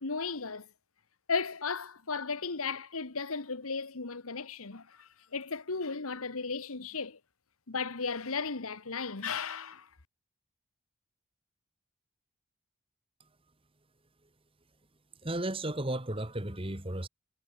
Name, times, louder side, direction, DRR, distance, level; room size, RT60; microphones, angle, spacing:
voice 1, 0.0-0.7 1.3-7.2 7.7-9.9, left 4 dB, 75° left, 1.5 m, -35 dB
voice 2, 15.2-17.1, right 1 dB, 25° right, 2.2 m, -34 dB
head